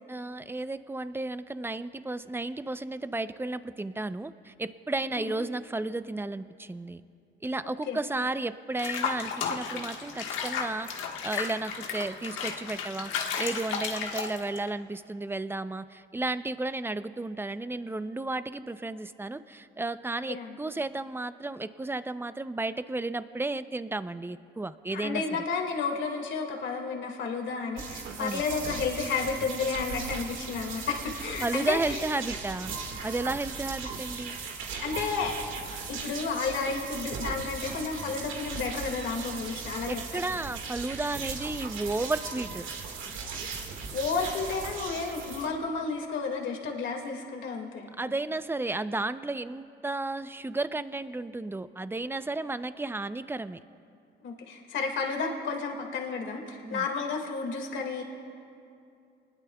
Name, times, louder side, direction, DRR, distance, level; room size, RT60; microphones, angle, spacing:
voice 1, 0.1-7.0 7.4-25.2 28.2-28.4 31.4-32.7 33.0-34.4 39.9-42.7 48.0-53.6 56.6-56.9, right 2 dB, 10° right, 12 dB, 0.6 m, -33 dB
Water / Bathtub (filling or washing), 8.8-14.7, left 6 dB, 90° left, 1.5 m, -33 dB
voice 2, 24.9-32.0 34.8-35.3 35.9-40.0 43.9-47.9 54.2-58.0, left 4 dB, 75° left, 2 dB, 2.1 m, -32 dB
sound 1, 27.8-45.5, right 5 dB, 80° right, 1.9 m, -38 dB
27.5 x 20.5 x 2.3 m, 2.5 s
cardioid pair, 90°, 20 cm